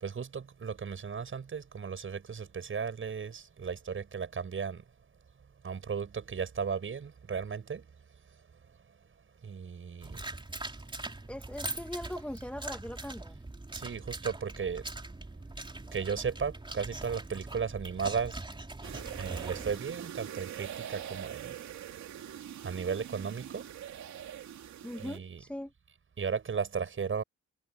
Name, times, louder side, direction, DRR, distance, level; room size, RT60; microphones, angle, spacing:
voice 1, 0.0-4.8 5.6-7.8 9.4-10.2 13.7-14.9 15.9-18.4 19.2-21.6 22.6-23.7 25.0-25.4 26.2-27.2, right 6 dB, 40° right, 7.3 m, -35 dB
sound 1, 10.0-19.8, right 2 dB, 15° right, 3.5 m, -42 dB
voice 2, 11.3-13.4 24.8-25.7, left 1 dB, 5° left, 2.2 m, -40 dB
sound 2, 18.8-25.2, right 10 dB, 70° right, 2.9 m, -43 dB
cardioid pair, 90°, 30 cm